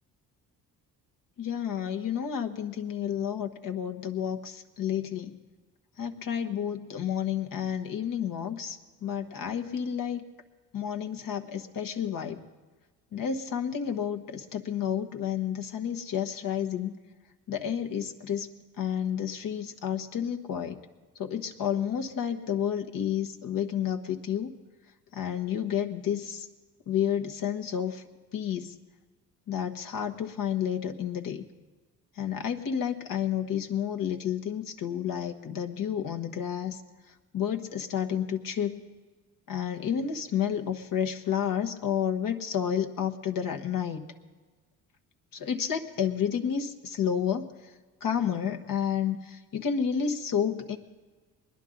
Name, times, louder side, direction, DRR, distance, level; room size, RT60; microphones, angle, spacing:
voice 1, 1.4-5.4 6.0-10.2 10.7-12.4 13.1-16.9 17.5-18.5 18.8-20.8 21.2-24.5 25.1-26.5 26.9-28.0 28.3-28.7 29.5-31.5 32.2-36.8 37.3-38.8 39.5-44.1 45.3-47.5 48.0-50.8, left 8 dB, 60° left, 4 dB, 1.2 m, -30 dB
20.5 x 11.0 x 3.9 m, 1.3 s
cardioid pair, 85°, 38 cm